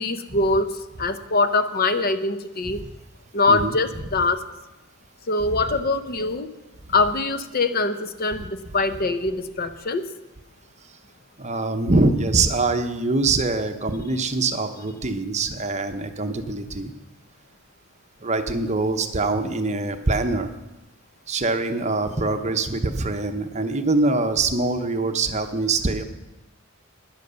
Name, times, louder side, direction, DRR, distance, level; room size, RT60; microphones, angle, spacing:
voice 1, 0.0-2.8 3.3-4.4 5.3-6.5 6.9-10.0, left 3 dB, 45° left, 11 dB, 0.7 m, -23 dB
voice 2, 11.4-16.9 18.2-20.5 21.3-26.0, right 3 dB, 30° right, 8 dB, 0.8 m, -24 dB
10.5 x 10.5 x 6.8 m, 1.0 s
head